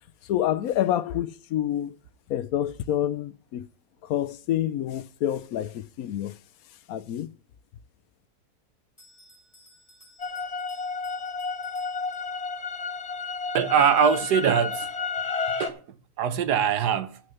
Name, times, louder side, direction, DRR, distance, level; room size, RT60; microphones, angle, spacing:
voice 1, 0.3-1.9 2.3-3.7 4.0-6.4 6.9-7.3, left 11 dB, 70° left, 1.1 m, -27 dB
Bell, 9.0-12.7, equal, 15° left, 3.4 m, -56 dB
sound 1, 10.2-15.7, left 5 dB, 30° left, 0.7 m, -31 dB
voice 2, 13.5-14.9 15.6-15.8 16.2-17.2, right 8 dB, 85° right, 1.5 m, -22 dB
11.5 x 6.6 x 6.9 m
omnidirectional pair, 1.7 m